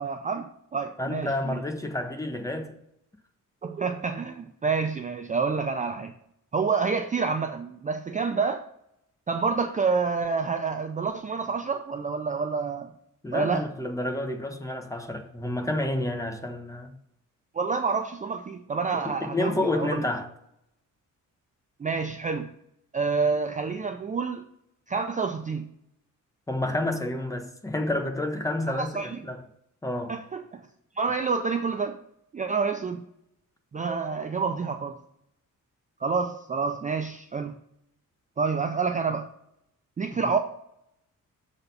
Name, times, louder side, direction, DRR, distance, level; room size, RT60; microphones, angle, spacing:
voice 1, 0.0-1.6 3.6-6.1 6.5-8.7 9.3-12.9 13.3-13.6 17.5-20.1 21.8-22.5 22.9-24.4 24.9-25.7 28.8-29.2 30.1-30.6 31.0-32.0 32.3-33.0 33.7-35.0 36.0-37.6 38.4-39.3 40.0-40.4, right 5 dB, 25° right, 0.4 m, -28 dB
voice 2, 1.0-2.8 13.2-17.0 18.9-20.3 26.5-29.4 29.8-30.2 40.2-40.3, left 1 dB, 10° left, 0.7 m, -29 dB
6.8 x 4.2 x 6.7 m
wide cardioid pair, 165°, 32 cm